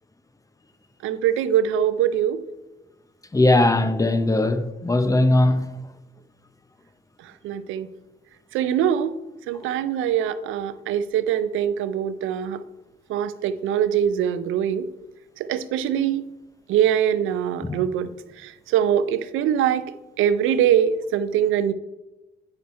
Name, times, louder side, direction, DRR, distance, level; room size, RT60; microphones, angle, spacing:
voice 1, 1.0-2.4 7.4-7.9 8.5-9.1 9.5-12.6 13.1-14.9 15.5-16.2 16.7-18.1 18.4-19.9 20.2-21.7, right 9 dB, 90° right, 0.5 m, -23 dB
voice 2, 3.3-5.7 17.6-17.8, left 2 dB, 15° left, 0.7 m, -19 dB
9.0 x 5.6 x 4.2 m
cardioid pair, 90°, 20 cm